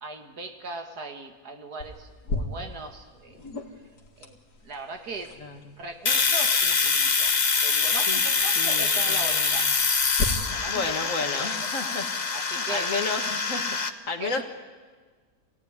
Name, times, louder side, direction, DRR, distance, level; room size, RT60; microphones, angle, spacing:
voice 1, 0.0-3.4 3.7-3.8 4.2-5.4 5.8-9.7 10.5-11.9 12.3-12.9 14.2-14.4, right 3 dB, 80° right, 5 dB, 2.5 m, -39 dB
sound 1, 1.8-10.2, left 2 dB, 80° left, 2.6 m, -38 dB
Domestic sounds home sounds, 6.1-13.9, left 5 dB, 35° left, 1.0 m, -24 dB
voice 2, 8.6-9.6 10.7-12.1 12.6-13.6 14.1-14.4, left 4 dB, 55° left, 5 dB, 2.2 m, -32 dB
26.0 x 17.0 x 9.7 m, 1.4 s
omnidirectional pair, 1.7 m